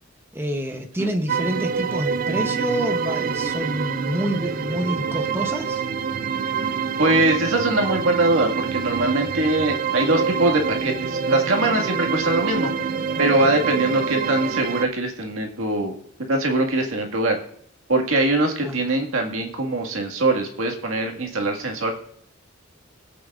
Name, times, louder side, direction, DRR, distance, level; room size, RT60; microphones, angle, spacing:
voice 1, 0.3-5.8 18.6-18.8, equal, 10° right, 4 dB, 0.8 m, -27 dB
sound 1, 1.3-14.9, right 6 dB, 45° right, 0.4 m, -26 dB
voice 2, 7.0-12.7 13.2-15.9 16.3-17.4 17.9-21.9, right 2 dB, 90° right, 1 dB, 1.9 m, -22 dB
25.0 x 8.5 x 2.5 m, 0.66 s
head